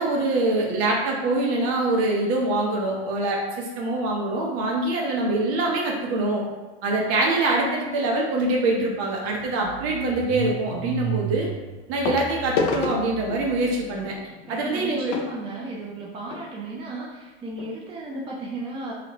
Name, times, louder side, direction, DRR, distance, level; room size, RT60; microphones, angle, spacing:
voice 1, 0.0-6.4 6.8-11.5 11.9-14.1 14.5-15.1, right 2 dB, 50° right, -1 dB, 0.9 m, -24 dB
Car / Engine starting, 8.4-8.5 8.8-14.0, right 8 dB, 90° right, 0.7 m, -35 dB
sound 1, 8.5-8.8 10.4-10.5 12.0-16.5 17.2-17.3 17.5-17.7 18.2-18.3, left 4 dB, 50° left, 0.5 m, -31 dB
voice 2, 14.5-18.9, right 2 dB, 15° right, -2 dB, 0.4 m, -35 dB
3.0 x 2.5 x 3.0 m, 1.2 s
hypercardioid pair, 95°, 32 cm